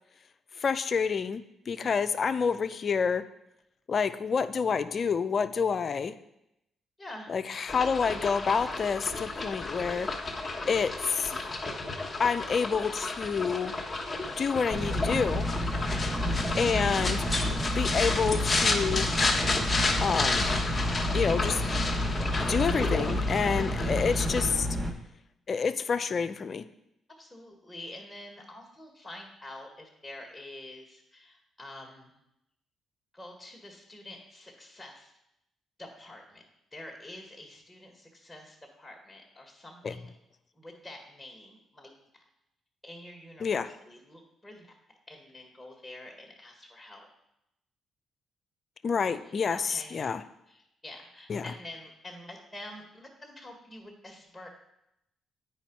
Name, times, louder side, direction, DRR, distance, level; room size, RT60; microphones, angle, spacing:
voice 1, 0.6-3.2 3.9-6.2 7.3-10.1 10.7-11.4 12.2-13.7 14.4-15.5 16.6-17.3 17.7-19.1 20.0-20.5 21.1-21.6 22.4-24.7 25.5-26.6 39.8-39.9 43.4-43.7 48.8-50.2 51.3-51.5, left 5 dB, 50° left, 12 dB, 0.5 m, -28 dB
voice 2, 7.0-7.3 15.8-16.2 27.1-32.2 33.1-35.1 35.8-36.4 36.7-40.1 40.5-42.2 42.8-44.7 45.1-47.1 49.5-50.0 50.5-54.5, left 1 dB, 15° left, 1 dB, 1.7 m, -47 dB
sound 1, 7.7-24.5, left 3 dB, 30° left, 1.4 m, -32 dB
sound 2, 14.7-24.9, left 1 dB, 20° right, 1.6 m, -30 dB
9.2 x 5.0 x 4.6 m, 0.84 s
supercardioid pair, 55°, 0 cm